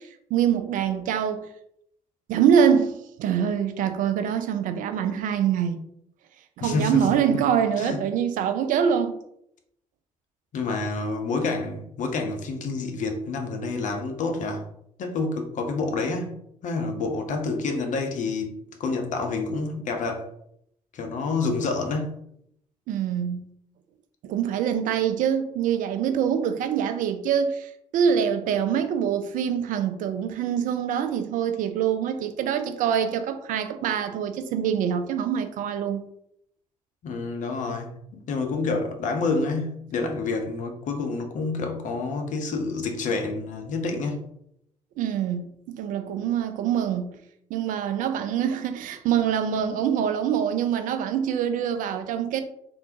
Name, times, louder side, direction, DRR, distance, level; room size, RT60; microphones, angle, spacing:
voice 1, 0.0-1.5 2.3-5.8 6.6-9.2 22.9-23.4 24.2-36.0 45.0-47.2 47.5-52.4, right 8 dB, 50° right, 0.4 m, -25 dB
voice 2, 6.6-7.1 7.3-7.4 7.8-8.0 10.5-14.7 15.0-16.3 16.6-20.3 20.9-22.2 37.0-44.3, left 3 dB, 45° left, 0.6 m, -28 dB
3.4 x 2.4 x 2.8 m
figure-of-eight pair, 45°, 18 cm